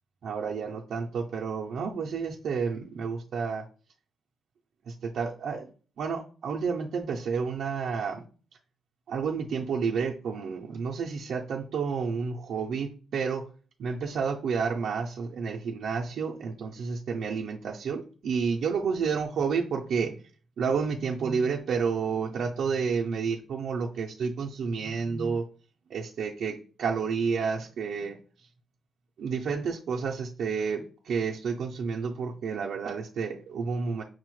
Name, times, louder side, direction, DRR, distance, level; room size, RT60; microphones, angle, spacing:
voice 1, 0.2-3.6 4.9-5.7 6.0-8.2 9.1-13.5 13.8-20.2 20.6-25.5 25.9-28.2 29.2-34.0, right 5 dB, 60° right, -2 dB, 0.4 m, -30 dB
6.1 x 2.1 x 3.0 m, 0.39 s
wide cardioid pair, 175°, 0 cm